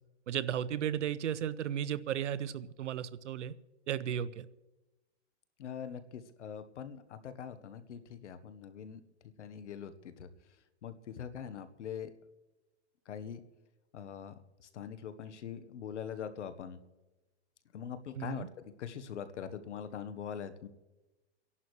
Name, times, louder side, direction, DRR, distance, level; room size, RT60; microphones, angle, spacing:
voice 1, 0.3-3.5 3.9-4.5 18.1-18.5, right 9 dB, 90° right, 17 dB, 0.7 m, -34 dB
voice 2, 5.6-9.0 9.4-10.3 10.8-12.1 13.1-13.4 13.9-16.8 17.7-20.7, left 8 dB, 80° left, 11 dB, 1.2 m, -43 dB
29.5 x 11.0 x 3.2 m, 1.1 s
hypercardioid pair, 150°, 35 cm